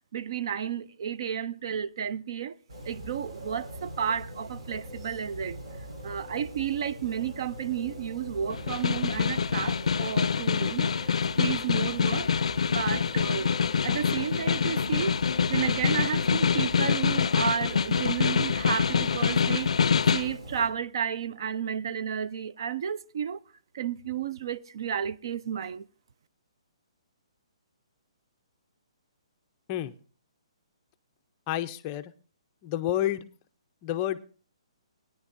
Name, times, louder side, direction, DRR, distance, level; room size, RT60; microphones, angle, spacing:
voice 1, 0.1-2.6 2.8-5.6 6.0-10.9 11.4-12.3 12.7-13.5 13.8-15.2 15.5-19.7 20.1-23.4 23.7-25.8, right 8 dB, 45° right, 0.4 m, -32 dB
sound 1, 2.7-20.7, equal, 65° right, 4.6 m, -42 dB
Snare drum, 8.5-20.3, left 6 dB, 90° left, 0.4 m, -26 dB
voice 2, 31.5-32.1 32.6-33.3 33.8-34.2, left 12 dB, 20° left, 0.5 m, -29 dB
19.0 x 9.9 x 2.6 m
hypercardioid pair, 170°, 3 cm